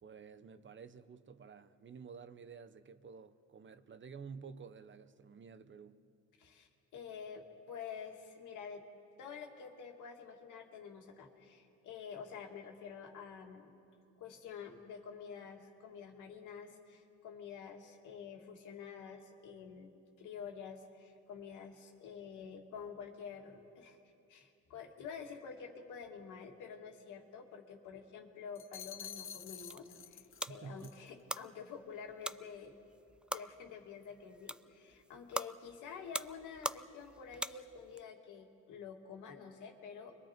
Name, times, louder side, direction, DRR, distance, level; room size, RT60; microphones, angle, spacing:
voice 1, 0.0-6.0 30.5-30.9, right 5 dB, 40° right, 0.9 m, -51 dB
voice 2, 6.4-8.9 9.2-13.7 14.2-19.9 20.2-24.0 24.3-30.2 30.5-32.7 33.3-40.1, left 6 dB, 90° left, 2.3 m, -49 dB
sound 1, 28.6-30.5 30.8-31.1, left 8 dB, 45° left, 0.8 m, -48 dB
sound 2, 29.4-38.0, right 1 dB, 5° right, 0.4 m, -44 dB
29.0 x 23.0 x 4.5 m
cardioid pair, 90°, 30 cm